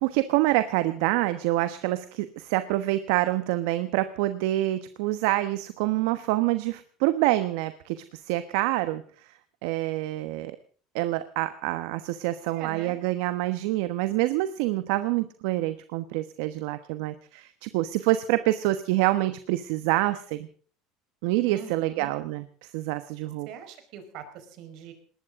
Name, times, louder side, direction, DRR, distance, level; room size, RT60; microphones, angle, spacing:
voice 1, 0.0-9.3 9.6-10.6 10.9-20.5 21.2-22.4 22.7-23.5, right 16 dB, 75° right, 12 dB, 1.1 m, -26 dB
voice 2, 12.5-13.0 21.4-22.1 23.4-24.9, right 9 dB, 60° right, 8 dB, 4.8 m, -42 dB
20.5 x 19.0 x 3.7 m, 0.43 s
cardioid pair, 140°, 0 cm